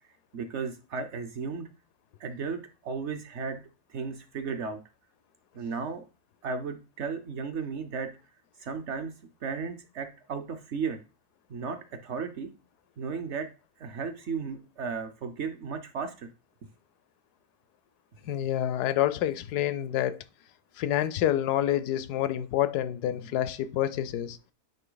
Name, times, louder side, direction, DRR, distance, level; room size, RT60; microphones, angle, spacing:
voice 1, 0.3-1.7 2.2-3.6 3.9-4.8 5.5-6.0 6.4-8.1 8.6-9.1 9.4-11.0 11.5-12.5 13.0-13.5 13.8-16.3 23.2-23.3, right 5 dB, 60° right, 0.8 m, -34 dB
voice 2, 18.2-20.2 20.8-24.4, left 12 dB, 85° left, 1.1 m, -28 dB
9.1 x 3.1 x 3.9 m
omnidirectional pair, 1.7 m